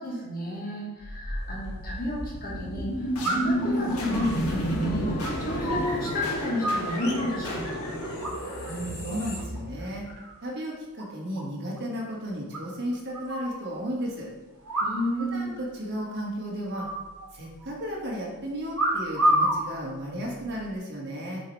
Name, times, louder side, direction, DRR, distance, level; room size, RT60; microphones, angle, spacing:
voice 1, 0.0-7.9 14.8-15.5, left 1 dB, 40° left, -3 dB, 1.4 m, -32 dB
sound 1, 1.0-10.1, equal, 75° left, 1.3 m, -31 dB
sound 2, 1.4-1.5 3.2-3.7 4.1-6.1 6.4-7.4 8.2-8.7 9.0-9.4 9.8-10.4 10.6-10.7 11.0-11.1 11.4-11.5 11.8-11.9 12.5-13.6 14.6-15.3 15.5-15.6 15.9-16.3 16.7-17.7 18.7-19.6 20.4-20.7, right 1 dB, 70° right, 1.8 m, -29 dB
voice 2, 8.6-10.0 10.4-14.3 15.2-16.9 17.3-21.4, equal, 50° right, -3 dB, 1.6 m, -34 dB
7.0 x 3.2 x 4.7 m, 1.2 s
head